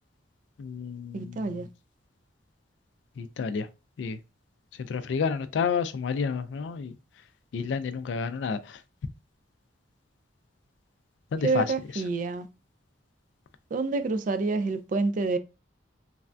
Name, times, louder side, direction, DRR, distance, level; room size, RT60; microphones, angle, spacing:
voice 1, 0.6-1.6 3.2-3.7 4.0-4.2 4.9-6.9 7.5-8.6 11.3-11.6, left 5 dB, 75° left, 0.3 m, -30 dB
voice 2, 1.1-1.7 11.4-12.5 13.7-15.4, right 3 dB, 45° right, 0.3 m, -27 dB
3.3 x 2.2 x 2.5 m
head